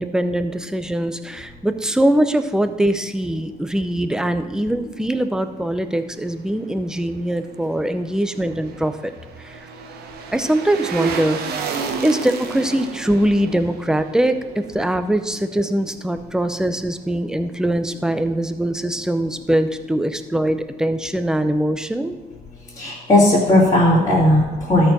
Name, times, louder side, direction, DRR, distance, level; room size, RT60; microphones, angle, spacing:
voice 1, 0.0-9.1 9.4-9.7 10.3-11.6 12.0-22.2, right 1 dB, 5° right, 9 dB, 0.6 m, -22 dB
sound 1, 8.2-15.4 15.7-15.8, right 5 dB, 70° right, 1.1 m, -31 dB
voice 2, 22.8-24.9, left 1 dB, 25° left, -10 dB, 2.7 m, -16 dB
13.0 x 4.6 x 6.0 m, 1.2 s
cardioid pair, 110°, 17 cm